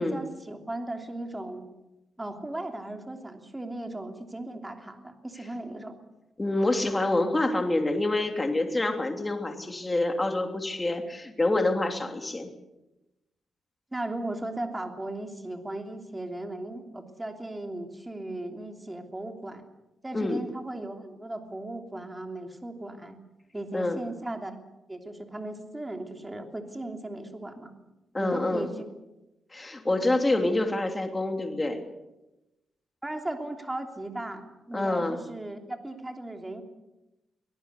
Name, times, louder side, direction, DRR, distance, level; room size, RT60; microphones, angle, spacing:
voice 1, 0.0-1.6 2.2-6.0 13.9-19.6 20.0-23.2 23.5-24.5 24.9-27.7 28.2-28.9 33.0-36.6, right 1 dB, 15° right, 4 dB, 3.1 m, -37 dB
voice 2, 6.4-12.5 20.1-20.4 23.7-24.0 28.1-28.7 29.5-31.8 34.7-35.2, left 2 dB, 15° left, 4 dB, 3.0 m, -27 dB
23.5 x 18.0 x 8.2 m, 0.98 s
cardioid pair, 120°, 0 cm